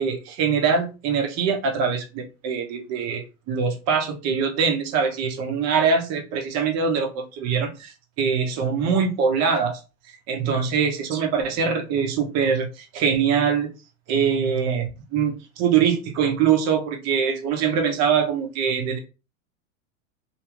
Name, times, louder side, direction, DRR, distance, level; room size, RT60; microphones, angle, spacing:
voice 1, 0.0-9.8 10.3-13.7 14.1-19.0, right 6 dB, 40° right, 0.9 m, -23 dB
2.8 x 2.2 x 3.0 m
hypercardioid pair, 115°, 42 cm